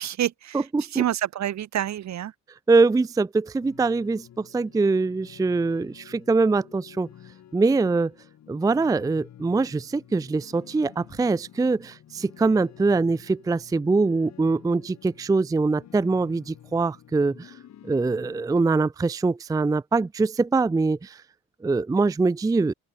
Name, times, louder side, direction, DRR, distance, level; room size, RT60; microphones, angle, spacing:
voice 1, 0.0-2.3, right 11 dB, 65° right, 1.7 m, -28 dB
voice 2, 0.5-1.0 2.7-7.1 7.5-8.1 8.5-17.5 17.9-21.2 21.6-22.7, right 3 dB, 10° right, 0.4 m, -23 dB
sound 1, 3.6-18.4, left 10 dB, 65° left, 2.6 m, -50 dB
open air
cardioid pair, 90°, 30 cm